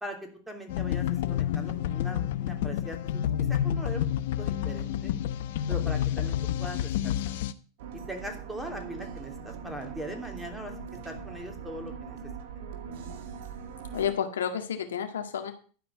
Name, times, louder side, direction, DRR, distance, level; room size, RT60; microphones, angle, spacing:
voice 1, 0.0-3.2 3.5-4.0 4.4-5.1 5.7-7.4 7.9-10.7 11.0-12.2 12.5-12.6, equal, 5° right, 3 dB, 3.2 m, -41 dB
sound 1, 0.7-7.5, left 10 dB, 70° left, 0.8 m, -29 dB
sound 2, 7.8-14.1, right 6 dB, 65° right, 2.1 m, -41 dB
voice 2, 13.9-15.5, left 8 dB, 85° left, 7 dB, 1.8 m, -30 dB
12.0 x 5.1 x 8.2 m, 0.41 s
hypercardioid pair, 100°, 0 cm